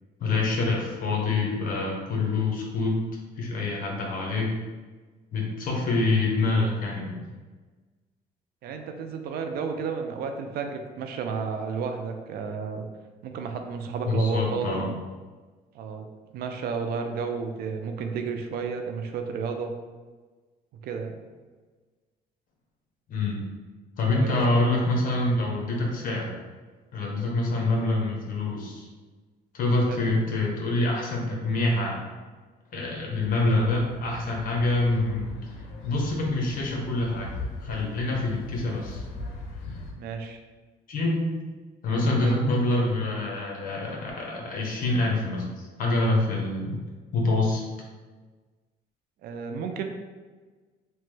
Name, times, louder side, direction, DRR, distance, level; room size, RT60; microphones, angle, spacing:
voice 1, 0.2-2.9 3.4-4.5 5.3-7.2 14.0-14.9 23.1-23.4 24.0-26.3 26.9-28.9 29.5-32.0 32.7-35.4 35.8-37.3 37.6-39.0 40.9-41.3 41.8-46.8 47.1-47.6, left 2 dB, 55° left, -1 dB, 0.8 m, -26 dB
voice 2, 8.6-12.8 13.2-14.9 15.7-16.1 16.3-19.7 20.8-21.2 24.1-24.7 29.9-30.1 39.9-40.4 42.2-42.4 49.2-49.8, right 5 dB, 65° right, 5 dB, 0.4 m, -32 dB
sound 1, 33.1-39.9, left 3 dB, 85° left, 0.5 m, -40 dB
2.9 x 2.2 x 3.1 m, 1.3 s
cardioid pair, 110°, 17 cm